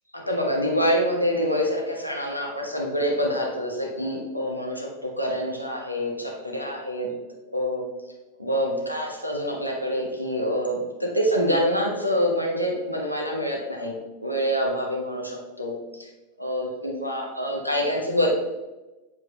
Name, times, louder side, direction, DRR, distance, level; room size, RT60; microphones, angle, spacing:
voice 1, 0.1-7.1 7.5-7.8 8.4-13.9 14.2-16.1 16.4-18.3, equal, 85° left, 0 dB, 1.2 m, -26 dB
7.5 x 4.7 x 3.2 m, 1.1 s
figure-of-eight pair, 90°, 0 cm